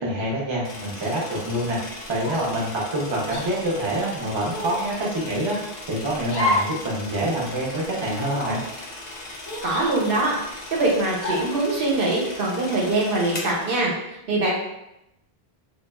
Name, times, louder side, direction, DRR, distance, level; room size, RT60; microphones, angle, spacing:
voice 1, 0.0-1.8 2.1-5.6 5.9-8.6, right 1 dB, 35° right, -4 dB, 0.5 m, -26 dB
sound 1, 0.6-13.8, left 2 dB, 50° left, 0.6 m, -38 dB
sound 2, 2.2-2.6 3.3-3.5 4.5-4.9 6.3-6.8 7.1-7.2 8.1-8.5 9.4-10.3 11.2-11.6, left 1 dB, 85° left, 0.9 m, -29 dB
voice 2, 9.6-13.9 14.3-14.6, right 2 dB, 65° right, -3 dB, 0.8 m, -23 dB
2.9 x 2.2 x 2.2 m, 0.87 s
omnidirectional pair, 1.1 m